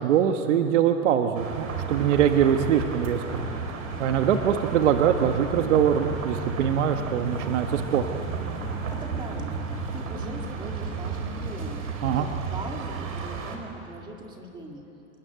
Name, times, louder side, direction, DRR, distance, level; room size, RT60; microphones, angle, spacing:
voice 1, 0.0-3.4 4.0-8.1 12.0-12.3, right 9 dB, 60° right, 5 dB, 1.4 m, -23 dB
sound 1, 1.3-13.6, right 4 dB, 75° right, 5.1 m, -32 dB
voice 2, 8.9-9.6 9.9-14.8, right 2 dB, 10° right, 2 dB, 2.0 m, -40 dB
29.0 x 20.5 x 9.4 m, 2.9 s
supercardioid pair, 170°, 41 cm